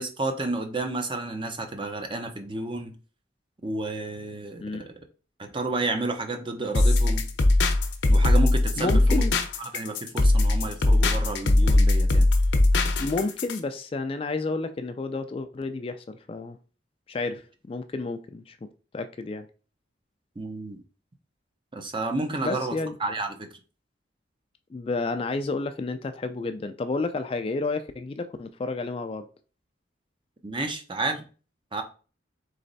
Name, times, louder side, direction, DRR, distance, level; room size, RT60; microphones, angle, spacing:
voice 1, 0.0-2.9 3.6-4.9 5.4-7.2 8.1-9.2 9.6-12.3 20.4-20.8 21.7-23.5 30.4-31.2 31.7-31.8, right 2 dB, 25° right, 0.6 m, -31 dB
sound 1, 6.7-13.6, left 2 dB, 75° left, 0.7 m, -20 dB
voice 2, 8.8-9.3 13.0-16.6 17.1-18.7 18.9-19.5 22.4-23.0 24.7-29.3, left 3 dB, 30° left, 0.3 m, -31 dB
3.9 x 3.2 x 4.0 m
head